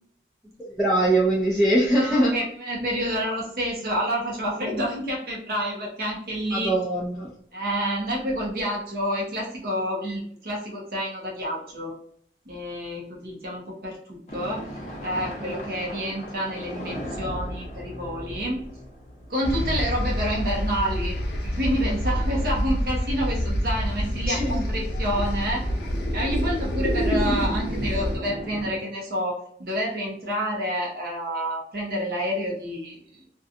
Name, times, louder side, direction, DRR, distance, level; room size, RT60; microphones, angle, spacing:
voice 1, 0.6-2.4 6.5-7.3 24.3-24.6, right 1 dB, ahead, -9 dB, 0.5 m, -22 dB
voice 2, 1.9-6.7 7.5-11.9 12.5-14.7 15.0-18.6 19.3-21.2 21.6-25.6 26.1-33.0, equal, 55° right, -3 dB, 0.7 m, -28 dB
sound 1, 14.3-20.1 20.7-20.8 21.4-21.5 23.3-28.8, equal, 40° left, 0.7 m, -34 dB
sound 2, 19.4-28.2, equal, 75° left, 0.6 m, -27 dB
2.6 x 2.3 x 2.5 m, 0.62 s
head